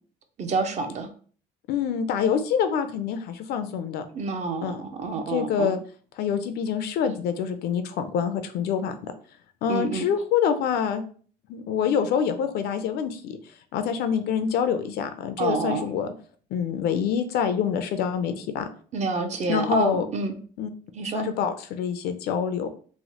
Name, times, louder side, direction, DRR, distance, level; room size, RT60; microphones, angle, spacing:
voice 1, 0.4-1.1 4.1-5.7 9.7-10.1 15.4-15.9 18.9-20.3 20.9-21.2, right 4 dB, 45° right, 7 dB, 0.6 m, -28 dB
voice 2, 1.7-4.1 4.6-4.8 5.3-5.8 6.2-9.1 9.6-11.0 11.5-13.4 13.7-16.1 16.5-18.7 19.5-20.1 20.6-20.7 21.0-22.7, left 7 dB, 70° left, 9 dB, 0.4 m, -26 dB
3.0 x 2.0 x 2.8 m, 0.43 s
cardioid pair, 110°, 17 cm